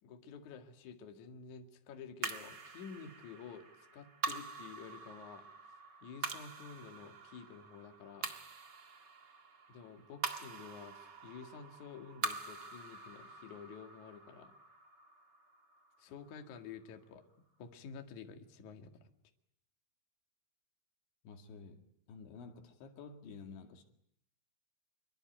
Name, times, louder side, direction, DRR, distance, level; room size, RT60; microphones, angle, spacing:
voice 1, 0.0-3.7 3.9-5.4 6.0-8.3 9.7-14.5 16.0-17.2 17.6-19.1, left 6 dB, 50° left, 2.9 m, -50 dB
sound 1, 2.2-16.7, right 4 dB, 75° right, 1.0 m, -45 dB
voice 2, 21.2-23.8, left 5 dB, 75° left, 4.6 m, -51 dB
27.0 x 23.5 x 9.2 m
omnidirectional pair, 5.4 m